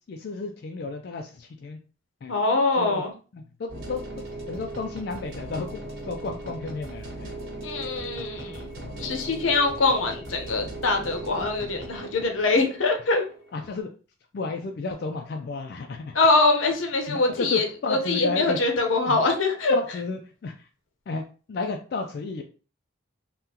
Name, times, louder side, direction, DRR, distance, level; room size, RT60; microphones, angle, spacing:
voice 1, 0.1-1.8 2.2-2.3 2.7-3.0 3.3-4.0 4.5-5.8 6.1-7.3 13.5-13.9 14.3-16.2 17.1-18.6 19.1-19.2 19.7-20.7 21.1-22.4, left 3 dB, 55° left, 0.3 m, -32 dB
voice 2, 2.3-3.1 7.6-8.7 9.0-13.2 16.1-19.8, left 3 dB, 85° left, 0.7 m, -23 dB
sound 1, 3.7-13.8, right 1 dB, 90° right, 1.0 m, -38 dB
3.6 x 2.2 x 2.8 m
head